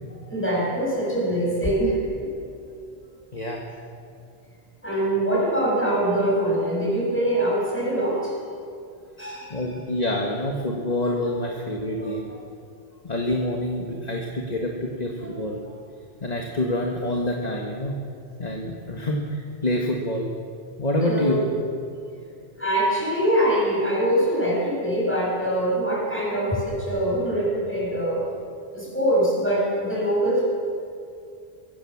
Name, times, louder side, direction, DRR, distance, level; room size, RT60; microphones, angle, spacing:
voice 1, 0.3-2.6 4.8-8.3 9.2-9.7 11.2-11.3 12.0-12.4 15.2-15.4 21.0-21.5 22.6-28.3 28.7-30.5, right 1 dB, 10° left, -4 dB, 6.8 m, -24 dB
voice 2, 3.3-3.7 9.5-12.3 13.0-15.6 16.2-18.0 18.4-20.3 20.8-21.4, left 1 dB, 40° left, 0 dB, 1.8 m, -27 dB
24.0 x 16.0 x 7.3 m, 2.4 s
omnidirectional pair, 1.1 m